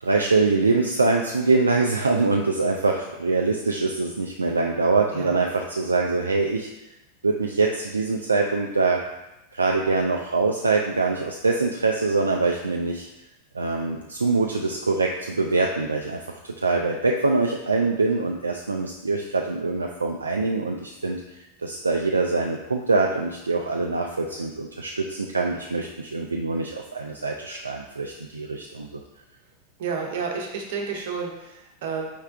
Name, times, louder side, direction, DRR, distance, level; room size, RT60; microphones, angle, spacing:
voice 1, 0.0-6.7 7.2-9.0 9.5-13.1 13.5-16.2 16.4-21.2 21.6-28.9, right 3 dB, 75° right, 1 dB, 0.3 m, -24 dB
voice 2, 29.8-32.1, right 5 dB, 55° right, 1 dB, 0.9 m, -30 dB
4.6 x 3.4 x 3.4 m, 0.94 s
figure-of-eight pair, 90°, 0 cm